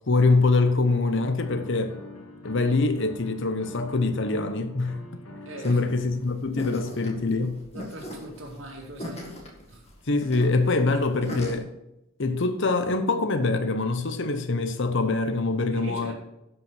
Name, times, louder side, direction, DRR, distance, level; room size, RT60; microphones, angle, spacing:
voice 1, 0.1-2.0 2.4-5.0 5.6-7.7 10.1-11.7 12.2-16.1, left 3 dB, 55° left, 0.8 m, -24 dB
sound 1, 1.4-6.5, left 2 dB, 80° left, 1.5 m, -45 dB
voice 2, 5.5-5.8 7.7-9.2 9.7-9.8 15.7-16.1, right 1 dB, 60° right, 2.3 m, -40 dB
sound 2, 5.6-11.6, left 1 dB, 30° left, 1.8 m, -39 dB
11.0 x 5.6 x 5.9 m
head